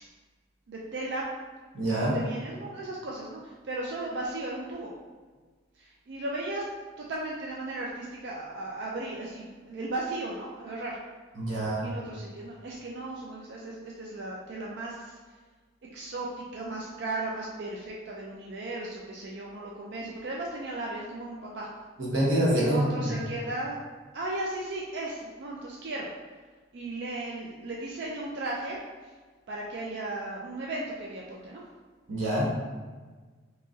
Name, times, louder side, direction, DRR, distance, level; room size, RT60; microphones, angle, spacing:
voice 1, 0.7-1.3 2.0-4.9 5.7-6.7 7.0-11.0 11.8-15.4 15.9-21.9 22.5-23.8 24.1-26.1 26.7-29.1 29.5-31.6 32.4-32.5, right 2 dB, 55° right, -3 dB, 0.4 m, -36 dB
voice 2, 1.7-2.1 11.4-11.8 22.0-23.2 32.1-32.5, right 1 dB, 75° right, -5 dB, 1.1 m, -26 dB
2.9 x 2.5 x 3.6 m, 1.4 s
head